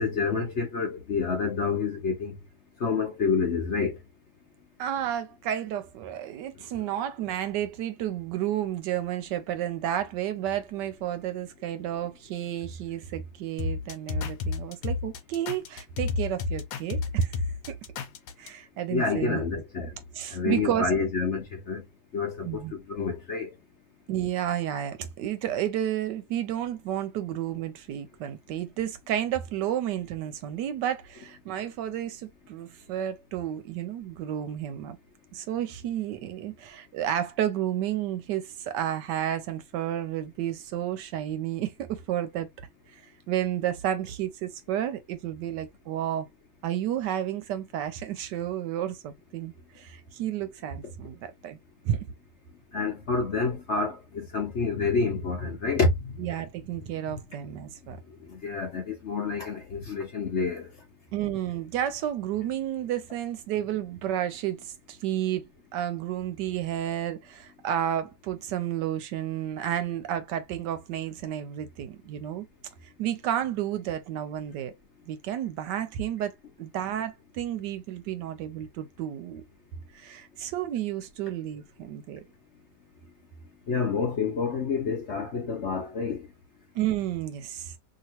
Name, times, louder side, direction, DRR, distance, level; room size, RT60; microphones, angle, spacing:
voice 1, 0.0-2.4 2.8-4.0 6.8-6.9 18.9-20.0 20.3-21.8 22.1-23.5 52.7-56.1 57.1-57.2 58.2-60.7 83.7-86.3, left 4 dB, 50° left, 0.9 m, -28 dB
voice 2, 4.8-17.3 17.7-17.8 18.4-19.4 20.2-20.9 22.4-22.7 24.1-35.0 35.3-42.5 42.9-43.0 43.3-46.3 46.6-51.6 51.8-52.1 56.2-58.0 61.1-65.4 65.7-72.5 73.0-74.7 75.1-79.4 79.9-82.3 86.7-87.7, right 11 dB, 75° right, 1.1 m, -31 dB
sound 1, 13.6-18.5, left 4 dB, 80° left, 1.3 m, -31 dB
2.9 x 2.8 x 2.9 m
omnidirectional pair, 2.0 m